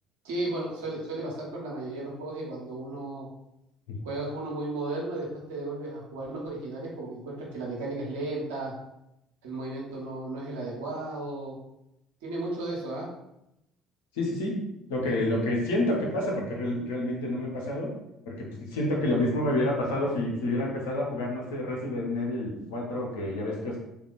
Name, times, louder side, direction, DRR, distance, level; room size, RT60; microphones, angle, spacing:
voice 1, 0.2-3.3 4.0-8.7 9.4-11.6 12.2-13.1, right 2 dB, 70° right, -4 dB, 1.2 m, -34 dB
voice 2, 14.1-14.6 14.9-17.9 18.3-23.8, left 1 dB, 70° left, -2 dB, 1.0 m, -29 dB
3.5 x 2.8 x 4.0 m, 0.85 s
figure-of-eight pair, 55°, 0 cm